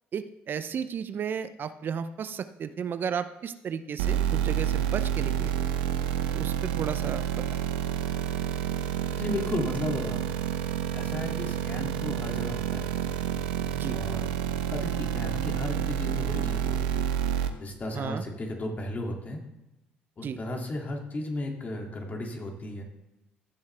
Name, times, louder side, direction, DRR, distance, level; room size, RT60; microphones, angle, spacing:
voice 1, 0.1-5.6 6.3-7.6 13.7-14.0 17.9-18.2 20.2-20.4, right 7 dB, 50° right, 12 dB, 0.5 m, -34 dB
sound 1, 4.0-17.5, right 9 dB, 90° right, 0.7 m, -29 dB
voice 2, 9.2-10.2 10.9-12.9 13.9-17.1 17.3-19.4 20.2-22.8, left 2 dB, 35° left, 1 dB, 2.3 m, -35 dB
14.5 x 7.3 x 3.4 m, 0.96 s
supercardioid pair, 70°, 5 cm